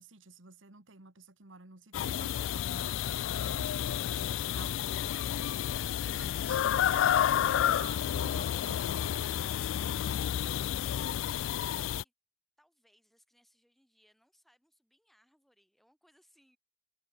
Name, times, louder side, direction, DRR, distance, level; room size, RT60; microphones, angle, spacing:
voice 1, 0.0-5.6 6.0-9.7 10.0-10.4, right 3 dB, 80° right, 2.2 m, -52 dB
sound 1, 1.9-12.0, left 10 dB, 75° left, 0.3 m, -30 dB
voice 2, 12.6-16.6, equal, ahead, 7.9 m, -69 dB
head